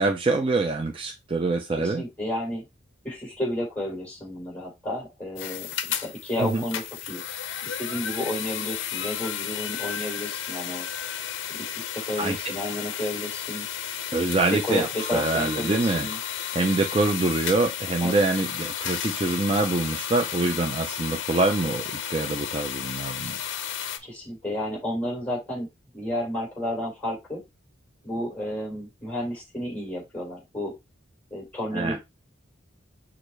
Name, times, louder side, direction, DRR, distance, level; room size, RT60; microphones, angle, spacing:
voice 1, 0.0-2.0 6.4-6.6 12.2-12.5 14.1-16.1 16.5-23.4 31.7-32.0, right 3 dB, 25° right, 0.4 m, -25 dB
voice 2, 1.7-2.6 3.0-7.2 7.6-10.8 11.5-13.6 14.5-16.2 18.0-18.2 24.0-25.7 25.9-27.4 28.0-30.7 31.3-32.0, left 1 dB, 10° left, 3.2 m, -32 dB
sound 1, 5.4-24.0, left 9 dB, 65° left, 0.5 m, -33 dB
6.2 x 2.5 x 3.2 m
head